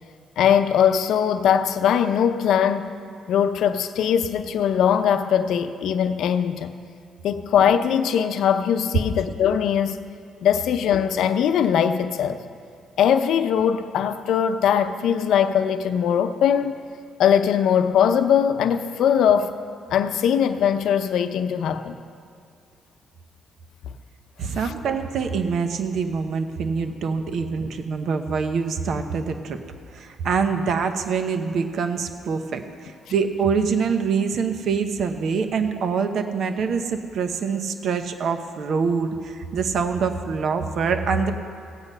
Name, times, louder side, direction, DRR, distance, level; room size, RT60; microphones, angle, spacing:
voice 1, 0.4-2.9 3.3-6.7 7.2-10.0 10.4-12.4 13.0-16.7 17.2-19.6 19.9-21.9 24.6-24.7, left 8 dB, 80° left, 0.6 m, -21 dB
voice 2, 24.4-29.6 29.9-41.3, right 5 dB, 65° right, 0.9 m, -25 dB
17.0 x 8.1 x 5.5 m
cardioid pair, 90°, 0 cm